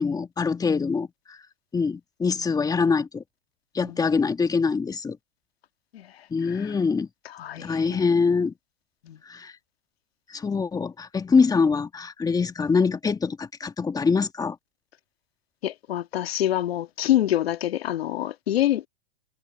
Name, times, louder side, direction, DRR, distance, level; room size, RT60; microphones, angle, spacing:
voice 1, 0.0-1.4 1.7-3.2 3.7-5.2 6.3-7.1 7.6-8.5 9.3-9.5 10.3-14.6, left 5 dB, 10° left, 1.4 m, -24 dB
voice 2, 5.9-6.7 7.3-8.0 9.0-9.2 15.6-18.9, left 13 dB, 75° left, 1.9 m, -27 dB
hypercardioid pair, 115°, 31 cm